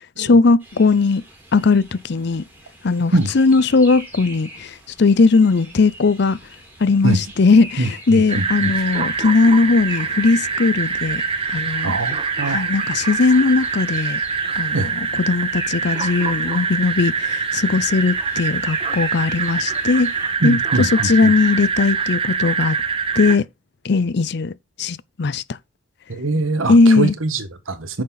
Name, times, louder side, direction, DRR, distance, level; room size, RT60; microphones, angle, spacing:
voice 1, 0.2-1.2 1.5-2.4 2.8-6.4 6.8-11.2 11.5-11.9 12.5-14.2 14.6-20.1 20.4-22.8 23.2-23.4 23.8-24.5 24.8-25.4 26.7-27.1, left 4 dB, 55° left, 0.5 m, -18 dB
sound 1, 0.6-20.3, right 1 dB, 10° right, 4.0 m, -43 dB
voice 2, 7.8-8.7 11.8-12.7 14.7-14.9 20.4-21.3 26.1-28.0, right 2 dB, 85° right, 1.5 m, -23 dB
sound 2, 8.3-23.4, right 5 dB, 25° right, 1.3 m, -24 dB
9.5 x 6.6 x 4.0 m
head